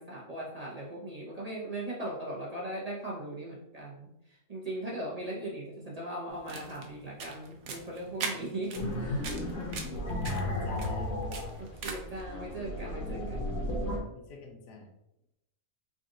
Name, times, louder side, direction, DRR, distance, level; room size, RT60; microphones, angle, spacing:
voice 1, 0.0-4.1 4.5-9.3 11.6-13.5, right 1 dB, 35° right, -5 dB, 0.6 m, -39 dB
sound 1, 6.3-12.2, right 4 dB, 75° right, 1.1 m, -42 dB
sound 2, 8.7-14.0, left 1 dB, 65° left, 1.2 m, -34 dB
voice 2, 9.3-9.8 10.2-11.3 14.1-14.9, left 3 dB, 85° left, 1 dB, 1.3 m, -46 dB
3.8 x 2.5 x 3.6 m, 0.87 s
omnidirectional pair, 1.6 m